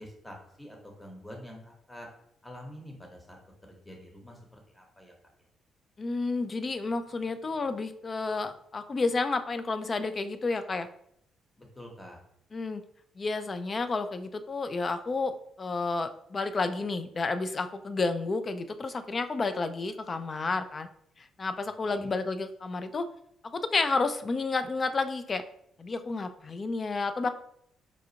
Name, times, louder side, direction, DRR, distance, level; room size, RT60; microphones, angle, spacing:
voice 1, 0.0-2.1 2.4-3.4 3.6-5.1 11.6-12.2 21.8-22.1, equal, 15° left, 1 dB, 1.0 m, -47 dB
voice 2, 6.0-10.9 12.5-12.8 13.2-20.9 21.2-23.1 23.4-25.4 25.8-27.3, left 3 dB, 35° left, 10 dB, 0.4 m, -31 dB
5.0 x 2.4 x 2.8 m, 0.72 s
cardioid pair, 90°, 0 cm